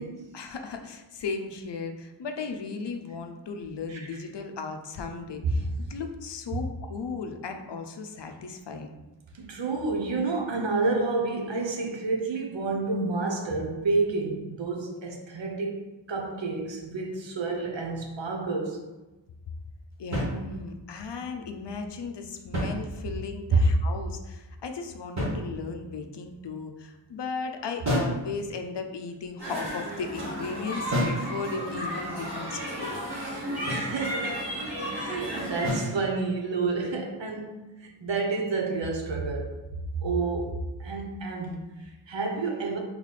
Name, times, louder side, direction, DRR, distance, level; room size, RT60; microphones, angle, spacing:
voice 1, 0.3-9.0 20.0-33.0, left 4 dB, 70° left, 0.6 m, -36 dB
voice 2, 3.9-4.2 5.4-5.5 9.4-18.8 23.5-23.6 33.7-34.6 34.9-39.6 39.9-42.8, right 3 dB, 75° right, 0.7 m, -29 dB
sound 1, 20.1-20.9 22.3-23.4 25.2-25.9 27.8-28.3 30.9-31.3 33.7-34.0 35.6-36.0, equal, 40° right, 1.4 m, -30 dB
sound 2, 29.4-35.7, equal, 60° right, 1.4 m, -33 dB
3.2 x 3.1 x 4.1 m
wide cardioid pair, 70°, 45 cm